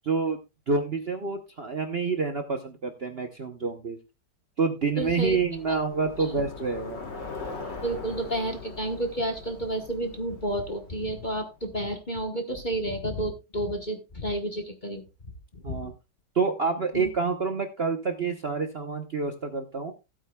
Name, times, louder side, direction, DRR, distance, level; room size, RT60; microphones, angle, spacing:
voice 1, 0.0-0.4 0.7-4.0 4.6-7.0 15.6-15.9 16.3-19.9, right 4 dB, 45° right, 6 dB, 0.9 m, -28 dB
Bicycle, 5.0-11.5, left 4 dB, 80° left, 3.2 m, -41 dB
voice 2, 5.0-5.4 5.7-5.8 6.2-6.4 7.8-15.0 15.5-15.9 16.9-17.1, right 1 dB, 30° left, 5 dB, 1.1 m, -31 dB
15.5 x 8.8 x 2.3 m, 0.25 s
omnidirectional pair, 1.9 m